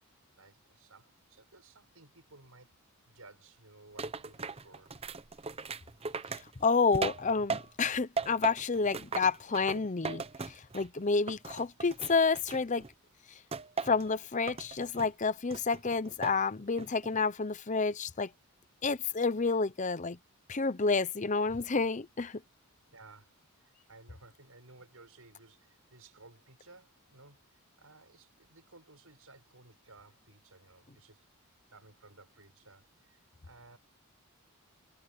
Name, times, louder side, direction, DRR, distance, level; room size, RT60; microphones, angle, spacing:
voice 1, 0.4-2.7 3.0-4.9 22.9-31.3 31.7-33.8, right 3 dB, 70° right, 6.2 m, -57 dB
sound 1, 4.0-7.9 8.2-11.0 11.3-12.9 13.5-14.1 14.5-15.1 15.5-16.4 16.8-17.2, right 4 dB, 25° right, 0.7 m, -38 dB
voice 2, 6.6-12.9 13.8-18.3 18.8-20.2 20.5-22.4, left 4 dB, 35° left, 0.7 m, -29 dB
head